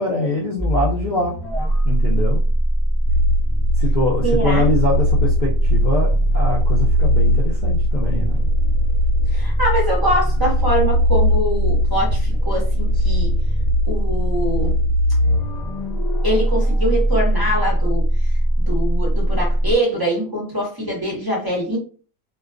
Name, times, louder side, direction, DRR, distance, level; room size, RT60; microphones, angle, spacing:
voice 1, 0.0-1.4 1.8-2.4 3.7-8.5, left 1 dB, 70° left, -2 dB, 0.4 m, -23 dB
sound 1, 0.6-19.8, equal, 30° left, 0.9 m, -20 dB
sound 2, 3.1-15.6, left 1 dB, 70° right, 0.9 m, -22 dB
voice 2, 4.2-4.6 9.3-13.4 13.9-14.8 16.2-18.1 18.7-21.8, equal, 25° right, -2 dB, 0.6 m, -23 dB
2.3 x 2.2 x 2.4 m, 0.38 s
omnidirectional pair, 1.4 m